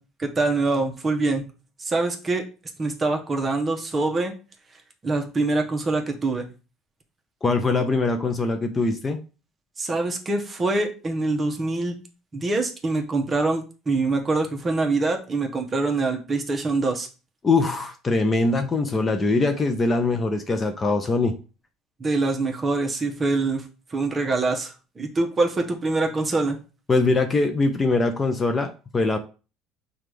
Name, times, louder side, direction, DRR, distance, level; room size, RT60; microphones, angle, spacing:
voice 1, 0.2-1.5 1.8-2.4 2.8-4.3 5.0-6.5 9.8-11.9 12.3-17.1 22.0-23.6 23.9-26.6, right 3 dB, 20° right, 4 dB, 0.8 m, -24 dB
voice 2, 7.4-9.2 17.4-21.4 26.9-29.2, left 3 dB, 20° left, 6 dB, 0.5 m, -22 dB
5.8 x 2.3 x 3.3 m, 0.34 s
cardioid pair, 130°, 0 cm